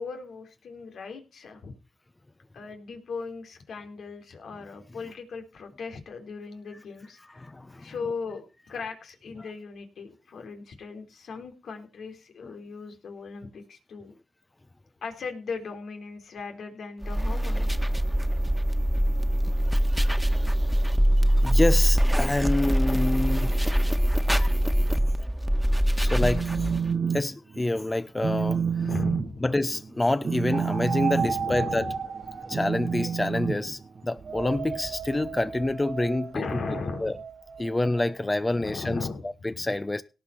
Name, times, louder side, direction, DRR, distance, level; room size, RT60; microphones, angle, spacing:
voice 1, 0.0-1.7 2.5-7.4 7.8-14.2 15.0-17.7 24.8-25.1 28.8-29.5 31.2-31.9 33.6-33.8 36.3-37.2 38.5-39.7, left 4 dB, 85° left, 3.6 m, -38 dB
voice 2, 7.4-7.9 19.9-20.1 21.4-23.5 26.0-26.5 27.1-28.6 29.4-31.8 32.5-36.4 37.0-37.2 37.6-40.0, left 2 dB, 30° left, 1.1 m, -27 dB
sound 1, 17.0-26.9, equal, 5° right, 1.8 m, -23 dB
Telephone, 26.0-27.2 27.5-27.8 28.2-34.3, right 6 dB, 65° right, 1.0 m, -29 dB
sound 2, 30.5-33.7 34.2-38.8, right 6 dB, 80° right, 3.6 m, -35 dB
17.5 x 6.0 x 5.8 m
cardioid pair, 40°, 0 cm